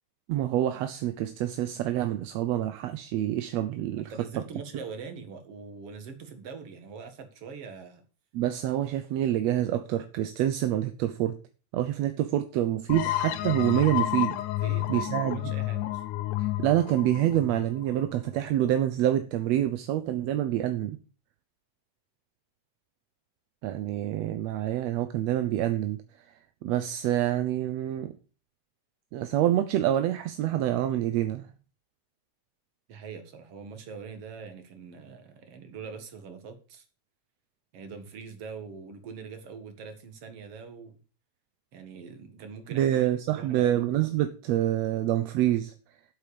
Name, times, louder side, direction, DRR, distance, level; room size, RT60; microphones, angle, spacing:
voice 1, 0.3-4.1 8.3-11.4 11.7-14.4 14.9-15.5 16.4-21.0 23.6-26.0 26.6-28.1 29.1-31.5 42.7-45.7, right 12 dB, 70° right, 1.7 m, -27 dB
voice 2, 4.0-8.0 14.6-16.0 32.9-36.8 37.7-41.0 41.7-43.0 43.3-43.8, right 5 dB, 55° right, 2.6 m, -43 dB
sound 1, 12.9-18.4, left 15 dB, 85° left, 2.3 m, -31 dB
8.3 x 8.0 x 6.9 m
omnidirectional pair, 3.5 m